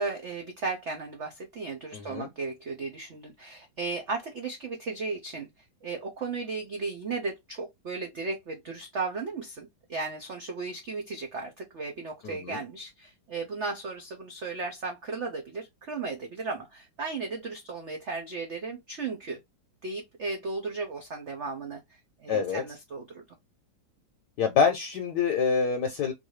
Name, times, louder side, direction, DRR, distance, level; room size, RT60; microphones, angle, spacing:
voice 1, 0.0-5.5 5.8-19.4 19.8-23.2, right 4 dB, 65° right, 0.6 m, -35 dB
voice 2, 1.9-2.3 12.2-12.6 22.3-22.6 24.4-26.1, left 6 dB, 65° left, 1.2 m, -26 dB
3.9 x 2.6 x 3.1 m
omnidirectional pair, 2.3 m